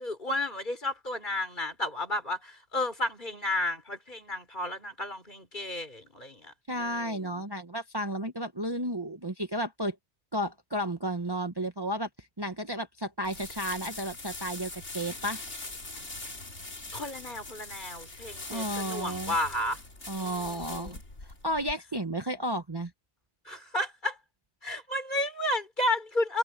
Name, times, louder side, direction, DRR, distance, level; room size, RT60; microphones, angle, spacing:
voice 1, 0.0-7.4 16.9-19.8 20.1-21.0 23.4-24.2 24.6-26.4, left 1 dB, 45° left, 4.0 m, -32 dB
voice 2, 6.7-10.0 10.3-15.4 18.1-18.2 18.5-19.3 20.1-21.0 21.4-22.9, equal, 20° right, 1.1 m, -33 dB
sound 1, 13.2-21.7, left 2 dB, 85° left, 4.1 m, -42 dB
omnidirectional pair, 1.2 m